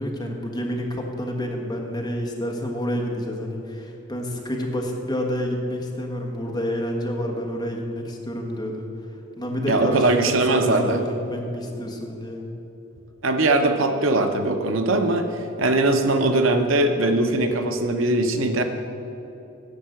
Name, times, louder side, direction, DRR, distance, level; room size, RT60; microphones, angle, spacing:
voice 1, 0.0-8.9 9.4-12.4, equal, 20° left, 0 dB, 1.4 m, -29 dB
voice 2, 9.7-11.0 13.2-15.3 15.6-18.6, right 2 dB, 80° right, 6 dB, 0.9 m, -20 dB
10.5 x 6.7 x 7.7 m, 2.9 s
head